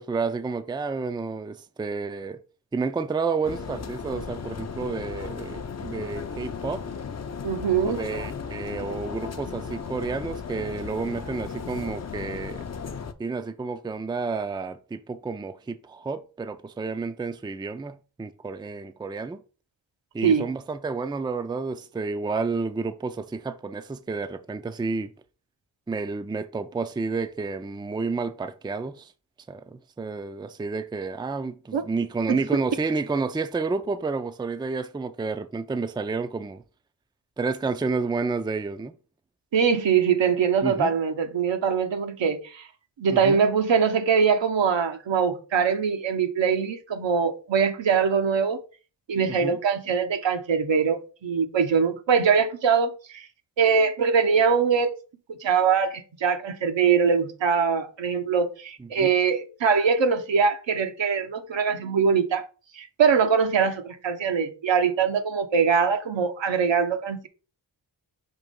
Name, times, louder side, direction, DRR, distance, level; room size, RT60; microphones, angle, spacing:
voice 1, 0.0-2.4 2.7-6.8 7.8-12.6 13.2-19.4 20.1-25.1 25.9-29.1 29.5-36.6 37.4-38.9 40.6-40.9 43.1-43.4 49.3-49.6 58.8-59.2, right 4 dB, 10° right, 0.4 m, -30 dB
sound 1, 3.4-13.1, left 6 dB, 35° left, 0.6 m, -35 dB
voice 2, 7.4-8.0 20.2-20.4 31.7-31.8 32.3-32.4 39.5-42.7 43.0-48.6 49.1-53.3 53.6-54.9 55.4-62.5 62.8-67.3, right 6 dB, 80° right, 1.0 m, -22 dB
6.0 x 3.0 x 5.2 m
wide cardioid pair, 90°, 44 cm